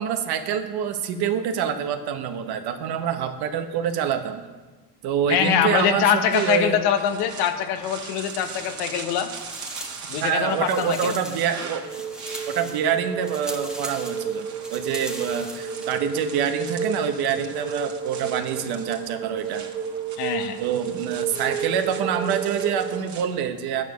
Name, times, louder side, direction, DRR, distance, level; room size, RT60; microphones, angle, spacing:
voice 1, 0.0-4.4 5.0-6.8 10.2-11.8 12.5-19.6 20.6-23.8, right 8 dB, 65° right, 7 dB, 1.3 m, -26 dB
voice 2, 5.3-9.3 10.1-11.2 20.2-20.6, left 9 dB, 80° left, 8 dB, 1.3 m, -23 dB
sound 1, 6.2-23.2, right 5 dB, 45° right, 1.9 m, -41 dB
sound 2, 8.1-9.0 9.3-15.9, right 1 dB, ahead, 1.3 m, -40 dB
sound 3, 11.8-23.0, right 6 dB, 20° right, 1.8 m, -32 dB
10.5 x 9.1 x 6.3 m, 1.3 s
supercardioid pair, 100°, 40 cm